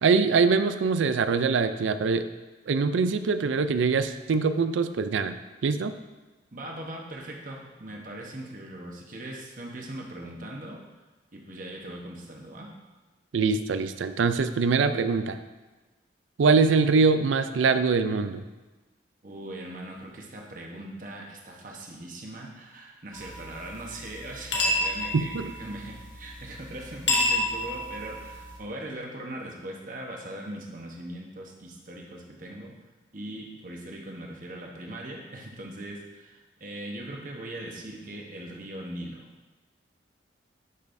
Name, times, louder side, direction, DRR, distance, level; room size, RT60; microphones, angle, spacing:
voice 1, 0.0-2.3 2.7-5.4 5.6-5.9 13.3-15.4 16.4-18.4 25.1-25.5, right 4 dB, 90° right, 11 dB, 0.4 m, -23 dB
voice 2, 6.5-10.8 11.3-12.7 19.2-32.7 33.1-39.2, right 1 dB, 45° right, -1 dB, 1.1 m, -40 dB
sound 1, 23.1-28.6, left 1 dB, 85° left, 1.4 m, -30 dB
11.0 x 5.3 x 2.6 m, 1.2 s
head